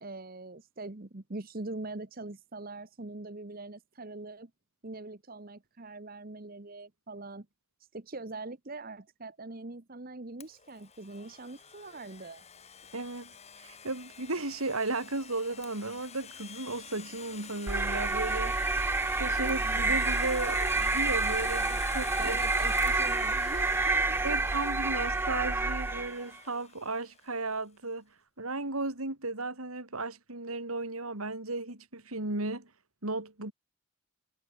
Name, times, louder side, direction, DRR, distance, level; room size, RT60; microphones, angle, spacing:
voice 1, 0.0-4.5 4.8-7.5 7.9-12.4 22.2-24.4, right 2 dB, 45° right, 1.2 m, -43 dB
Domestic sounds home sounds, 10.4-27.2, left 7 dB, 30° left, 4.6 m, -47 dB
voice 2, 12.9-18.6 19.2-22.4 22.8-22.9 24.2-28.1 28.4-32.7 33.0-33.5, right 2 dB, 90° right, 4.4 m, -35 dB
sound 1, 17.7-26.2, right 3 dB, 10° right, 0.3 m, -28 dB
head